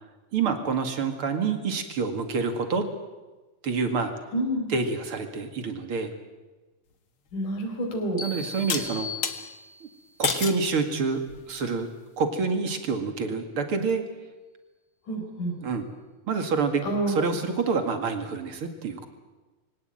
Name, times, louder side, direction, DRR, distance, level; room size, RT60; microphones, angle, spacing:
voice 1, 0.3-2.9 3.6-4.1 4.7-6.1 8.2-9.1 9.8-9.9 10.2-11.2 11.5-11.9 12.2-14.0 15.6-15.8 16.3-19.1, right 4 dB, 45° right, 7 dB, 2.7 m, -27 dB
voice 2, 4.3-4.7 7.3-8.2 15.1-15.6 16.8-17.1, right 1 dB, 75° left, 4 dB, 5.7 m, -28 dB
sound 1, 7.3-7.4 8.7-9.4 10.2-10.6 11.3-11.7, left 6 dB, 45° left, 2.2 m, -29 dB
sound 2, 8.2-10.1, left 2 dB, 20° left, 2.3 m, -38 dB
24.0 x 17.5 x 9.1 m, 1.2 s
omnidirectional pair, 3.6 m